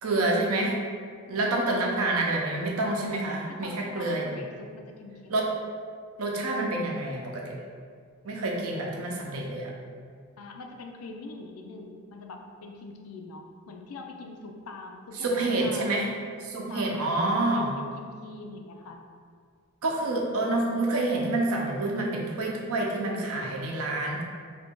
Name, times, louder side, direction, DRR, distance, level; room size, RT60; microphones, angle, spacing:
voice 1, 0.0-0.8 1.3-4.4 5.3-5.4 6.2-7.5 8.2-9.7 15.2-16.1 16.4-17.7 19.8-24.3, right 2 dB, 85° right, -1 dB, 0.6 m, -28 dB
voice 2, 1.4-1.7 3.5-5.5 10.4-16.0 16.7-17.3 17.5-19.1, left 3 dB, 90° left, 3 dB, 0.4 m, -44 dB
2.9 x 2.6 x 3.5 m, 2.1 s
head